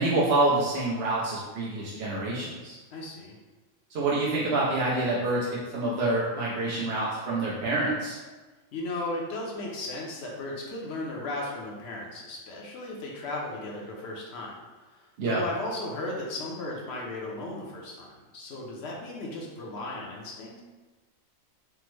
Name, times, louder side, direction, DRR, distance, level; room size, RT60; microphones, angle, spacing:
voice 1, 0.0-2.8 3.9-8.2 15.2-15.4, right 2 dB, 65° right, -6 dB, 0.7 m, -27 dB
voice 2, 2.9-3.3 8.7-14.6 14.9-20.6, left 2 dB, 65° left, -2 dB, 0.8 m, -36 dB
3.4 x 2.0 x 3.0 m, 1.3 s
omnidirectional pair, 1.4 m